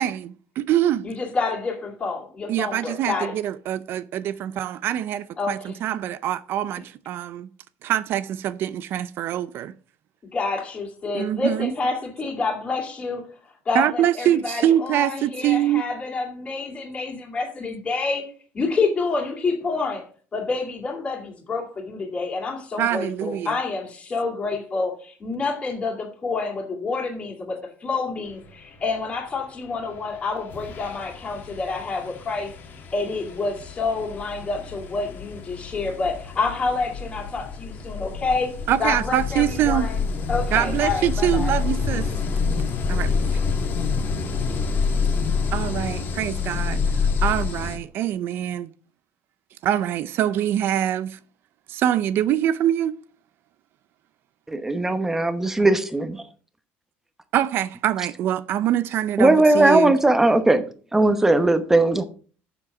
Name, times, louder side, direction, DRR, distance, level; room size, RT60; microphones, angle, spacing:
voice 1, 0.0-1.1 2.5-7.5 7.8-9.7 11.1-11.7 13.7-15.8 22.8-23.6 38.7-39.9 40.5-42.1 42.9-43.4 45.5-46.8 47.2-48.7 49.6-51.2 51.7-52.9 57.3-59.9, right 11 dB, 50° right, 0.5 m, -24 dB
voice 2, 1.0-3.4 5.4-5.8 10.3-20.0 20.3-32.5 32.9-38.5 38.8-40.0 40.3-41.5, left 4 dB, 25° left, 2.5 m, -28 dB
sound 1, 30.0-30.1 30.5-47.8, left 5 dB, 45° left, 1.7 m, -27 dB
voice 3, 54.5-56.2 59.2-60.6 60.9-62.0, right 2 dB, 10° right, 0.9 m, -18 dB
7.3 x 6.8 x 5.9 m
cardioid pair, 145°, 5 cm